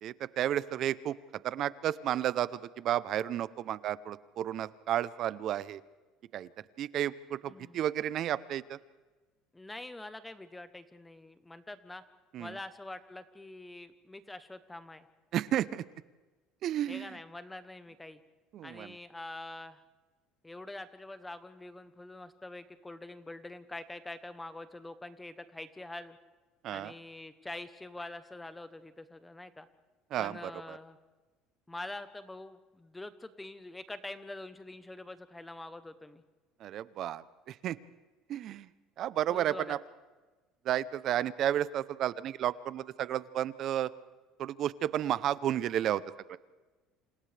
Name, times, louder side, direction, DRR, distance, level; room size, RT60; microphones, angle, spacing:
voice 1, 0.0-1.1 1.4-5.8 6.3-6.5 6.8-8.8 12.3-12.6 15.3-15.8 16.6-17.1 18.5-18.9 26.6-26.9 30.1-30.8 36.6-37.8 38.3-38.7 39.0-39.8 40.6-43.9 44.4-46.0 46.3-46.4, right 11 dB, 50° right, 17 dB, 0.7 m, -32 dB
voice 2, 7.5-7.8 9.5-12.0 12.4-15.1 16.9-18.2 18.6-19.8 20.4-26.2 26.7-29.7 30.2-31.0 31.7-36.2 39.3-39.8, left 2 dB, 10° left, 11 dB, 0.9 m, -45 dB
28.5 x 27.5 x 3.4 m, 1.3 s
cardioid pair, 135°, 0 cm